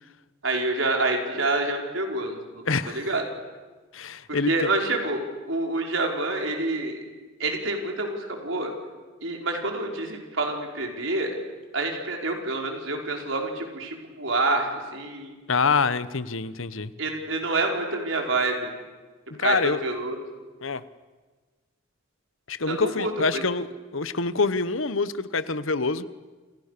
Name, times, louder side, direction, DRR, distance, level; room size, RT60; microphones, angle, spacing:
voice 1, 0.4-2.4 2.9-3.2 4.3-5.2 5.5-7.0 7.4-8.7 9.2-11.3 11.7-15.3 17.0-18.7 19.4-20.2 22.7-23.4, right 2 dB, 65° right, 2 dB, 5.3 m, -27 dB
voice 2, 2.6-3.1 3.9-4.7 15.5-16.9 19.3-19.8 20.6-20.8 22.5-23.7 23.9-26.0, left 4 dB, 70° left, 15 dB, 1.1 m, -26 dB
29.5 x 28.5 x 6.9 m, 1.3 s
head